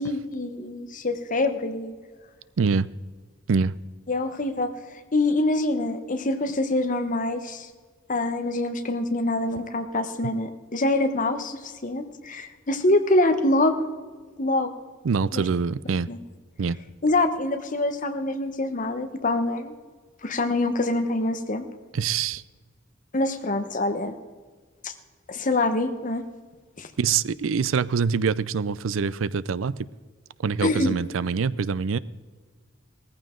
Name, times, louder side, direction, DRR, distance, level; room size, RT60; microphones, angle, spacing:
voice 1, 0.0-1.9 4.1-7.7 8.1-13.7 14.4-14.7 15.3-15.4 16.1-16.2 17.0-19.7 20.2-21.6 23.1-24.2 24.8-24.9 25.3-26.2 26.8-26.9 30.6-30.9, left 2 dB, 40° left, 8 dB, 1.1 m, -25 dB
voice 2, 2.6-2.9 3.5-3.7 15.0-16.1 16.6-16.8 21.9-22.4 27.0-29.8 30.4-32.0, right 5 dB, 80° right, 18 dB, 0.5 m, -24 dB
17.0 x 14.5 x 3.8 m, 1.5 s
head